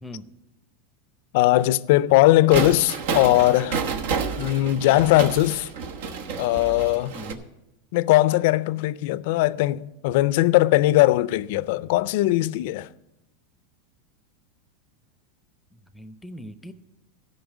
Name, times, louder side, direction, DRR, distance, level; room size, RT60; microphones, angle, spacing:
voice 1, 1.3-3.8 4.4-5.7 6.4-7.1 7.9-12.9, left 16 dB, 65° left, 0.4 m, -20 dB
sound 1, 2.5-7.3, right 5 dB, 70° right, 1.1 m, -30 dB
voice 2, 15.7-16.7, equal, 5° left, 0.7 m, -40 dB
13.0 x 5.6 x 8.3 m
supercardioid pair, 135°, 0 cm